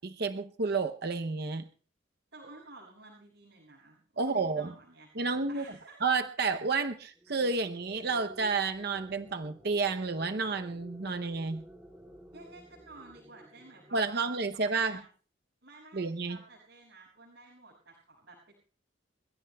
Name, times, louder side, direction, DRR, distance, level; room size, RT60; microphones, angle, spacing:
voice 1, 0.0-1.7 4.2-4.7 5.2-5.6 6.0-11.7 13.9-15.0 15.9-16.4, right 4 dB, 55° right, 7 dB, 0.7 m, -30 dB
voice 2, 2.3-5.1 5.5-6.0 12.3-15.1 15.6-18.5, right 2 dB, 70° right, -4 dB, 6.5 m, -53 dB
sound 1, 7.1-14.6, equal, 10° right, 2.7 m, -53 dB
29.0 x 16.0 x 2.3 m, 0.43 s
head